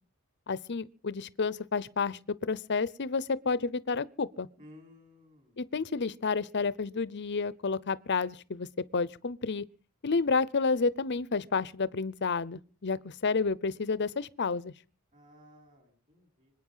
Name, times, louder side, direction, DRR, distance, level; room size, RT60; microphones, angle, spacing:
voice 1, 0.5-4.5 5.6-8.7 8.9-9.6 10.0-14.7, left 4 dB, 50° left, 0.7 m, -30 dB
voice 2, 4.6-5.6 15.1-16.5, left 1 dB, 35° right, 4.7 m, -56 dB
26.0 x 8.9 x 5.7 m
head